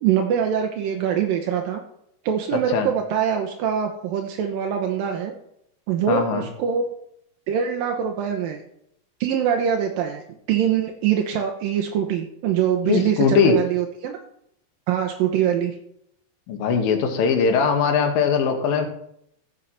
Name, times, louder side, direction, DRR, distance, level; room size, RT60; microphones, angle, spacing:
voice 1, 0.0-1.8 2.2-5.3 5.9-6.8 7.5-8.6 9.2-10.2 10.5-14.2 14.9-15.8, right 8 dB, 80° right, 3 dB, 2.7 m, -23 dB
voice 2, 6.1-6.5 12.9-13.6 16.5-18.9, left 6 dB, 80° left, 4 dB, 3.2 m, -20 dB
15.0 x 5.7 x 5.7 m, 0.74 s
omnidirectional pair, 4.0 m